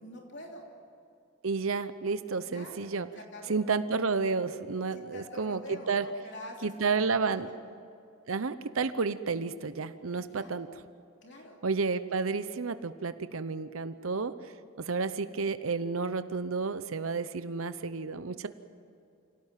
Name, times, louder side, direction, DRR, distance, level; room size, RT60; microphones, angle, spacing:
voice 1, 0.0-0.7 2.5-2.8 3.1-3.6 4.9-7.6 10.2-10.5 11.2-11.6, left 1 dB, 60° left, 0 dB, 3.1 m, -46 dB
voice 2, 1.4-3.1 3.5-6.1 6.6-7.5 8.3-10.7 11.6-14.3 14.8-18.5, right 4 dB, 80° right, 12 dB, 0.8 m, -31 dB
25.5 x 17.5 x 9.1 m, 2.6 s
head